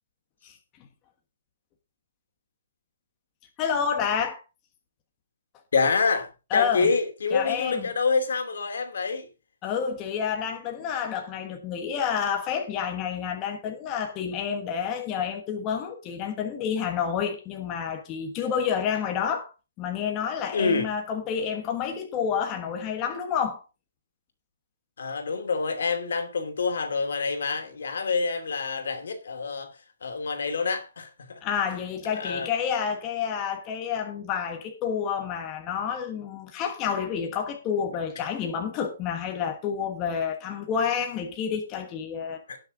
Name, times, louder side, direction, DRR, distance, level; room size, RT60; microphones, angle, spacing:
voice 1, 3.6-4.4 6.5-6.9 7.3-7.8 9.6-19.5 19.8-23.6 31.4-42.4, left 7 dB, 20° left, 1.3 m, -29 dB
voice 2, 5.7-9.3 20.5-20.9 25.0-31.4 32.1-32.5 42.5-42.6, left 4 dB, 75° left, 2.7 m, -27 dB
18.0 x 6.5 x 3.8 m
hypercardioid pair, 175°, 0 cm